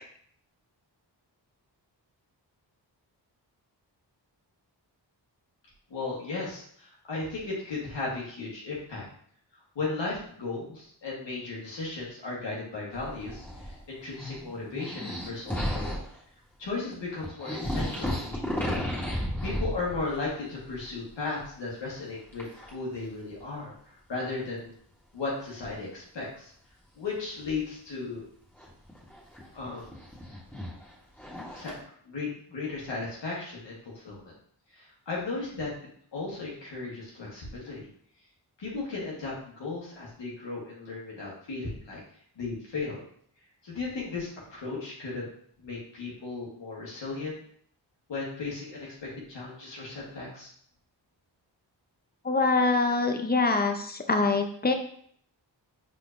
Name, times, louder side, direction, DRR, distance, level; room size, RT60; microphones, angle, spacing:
voice 1, 5.9-9.0 9.7-15.9 16.6-18.8 19.4-24.7 25.1-26.5 27.0-28.2 29.5-30.0 31.5-31.7 32.0-34.3 34.7-37.9 38.6-42.0 42.4-43.0 43.6-45.3 45.6-47.4 48.1-50.5, left 3 dB, 75° left, -5 dB, 1.4 m, -36 dB
sound 1, 12.9-13.8 14.1-16.2 16.9-17.0 17.2-20.3 20.6-21.1 22.3-22.7 23.4-23.5 25.4-25.5 28.6-31.8, equal, 5° left, 1.6 m, -34 dB
voice 2, 52.2-54.7, left 3 dB, 20° left, 5 dB, 0.6 m, -24 dB
4.5 x 3.8 x 2.6 m, 0.62 s
cardioid pair, 50°, 44 cm